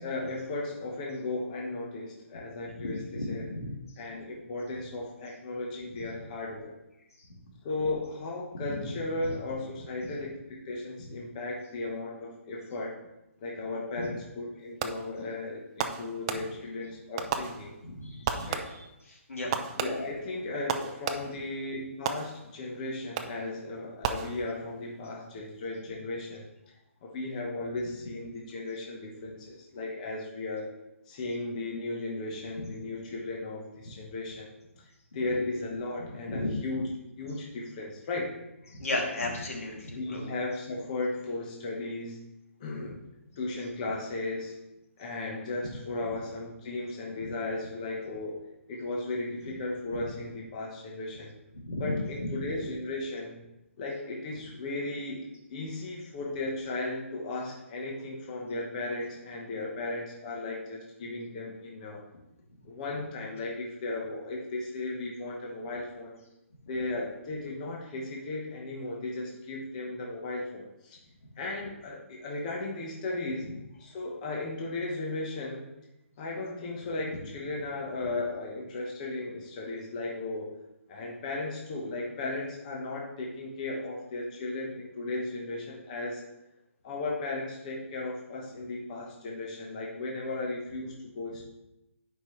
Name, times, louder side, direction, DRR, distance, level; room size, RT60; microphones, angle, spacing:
voice 1, 0.0-3.5 4.0-6.7 7.6-13.0 13.4-17.7 18.5-18.7 19.8-26.5 27.0-30.7 31.1-34.5 34.8-36.9 37.2-38.3 39.9-42.2 42.6-43.0 43.4-44.6 45.0-48.4 48.7-51.3 51.8-53.3 53.8-62.0 62.6-66.2 66.7-71.0 71.4-73.5 73.8-75.7 76.2-80.5 80.9-86.2 86.8-91.4, left 2 dB, 30° left, -2 dB, 1.2 m, -36 dB
voice 2, 2.8-3.2 3.5-3.6 8.7-8.8 14.0-14.1 18.0-18.5 19.3-19.5 36.3-36.5 38.7-40.2 51.6-52.0, left 2 dB, 85° left, -2 dB, 2.7 m, -33 dB
Fireworks, 14.8-15.2 15.8-16.8 17.2-17.9 18.2-19.0 19.5-21.5 22.1-22.7 23.2-23.6 24.0-24.8, right 8 dB, 25° right, 0.5 m, -34 dB
11.5 x 5.3 x 3.2 m, 0.92 s
hypercardioid pair, 165°, 8 cm